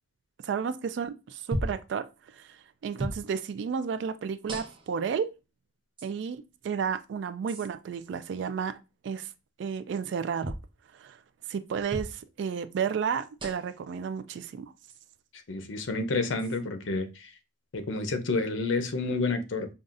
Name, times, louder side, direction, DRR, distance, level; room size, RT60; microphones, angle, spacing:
voice 1, 0.4-2.1 2.3-2.6 2.8-5.3 6.0-8.8 9.0-9.3 9.6-10.6 10.9-11.2 11.5-14.7, right 6 dB, 70° right, 0.3 m, -32 dB
sound 1, 1.5-1.9 3.0-3.2 4.5-5.0 6.0-6.1 7.5-7.7 10.4-10.7 11.9-12.2 13.4-13.8 14.9-15.0 16.4-16.6, equal, 25° right, 0.7 m, -35 dB
voice 2, 15.5-17.3 17.7-19.7, left 3 dB, 85° left, 0.6 m, -29 dB
5.3 x 2.4 x 2.5 m
head